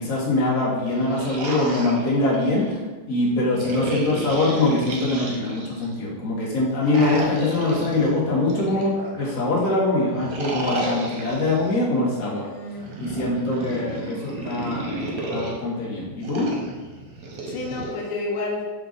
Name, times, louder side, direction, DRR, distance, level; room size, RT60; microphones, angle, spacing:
voice 1, 0.0-2.7 3.1-12.5 13.0-16.5, left 2 dB, 50° left, -5 dB, 1.2 m, -23 dB
sound 1, 0.8-2.8 3.6-5.9 6.8-9.3 10.1-11.8 12.7-15.5 16.2-17.9, right 2 dB, 65° right, 0.9 m, -32 dB
voice 2, 3.2-3.6 12.2-13.0 17.5-18.6, left 2 dB, 90° left, -1 dB, 0.8 m, -31 dB
4.8 x 2.2 x 3.8 m, 1.3 s
omnidirectional pair, 2.3 m